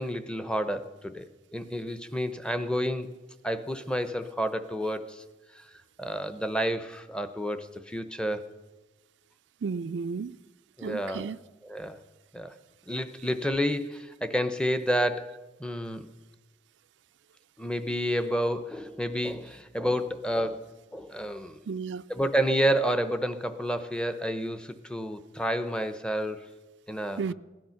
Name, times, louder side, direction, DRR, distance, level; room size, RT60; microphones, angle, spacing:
voice 1, 0.0-3.1 3.4-5.2 5.5-5.7 6.0-8.5 10.8-11.3 11.6-12.0 12.3-12.5 12.9-15.3 15.6-16.1 17.6-20.6 20.9-21.6 22.1-26.4 26.9-27.3, equal, 5° left, 0.7 m, -30 dB
voice 2, 9.6-10.4 10.8-11.4 21.7-22.0 27.2-27.3, right 5 dB, 75° right, 0.4 m, -33 dB
17.0 x 11.0 x 5.8 m
head